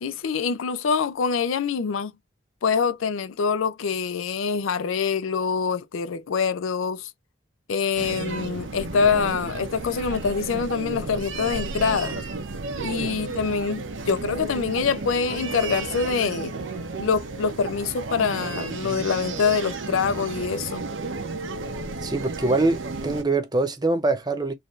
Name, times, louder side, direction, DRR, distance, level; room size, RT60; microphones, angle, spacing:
voice 1, 0.0-2.1 2.6-7.1 7.7-12.2 12.8-16.5 17.0-20.8, left 5 dB, 80° left, 0.4 m, -25 dB
sound 1, 7.9-23.2, right 3 dB, 70° right, 0.8 m, -33 dB
voice 2, 22.0-24.5, right 2 dB, 20° right, 0.6 m, -24 dB
4.0 x 2.6 x 3.1 m
head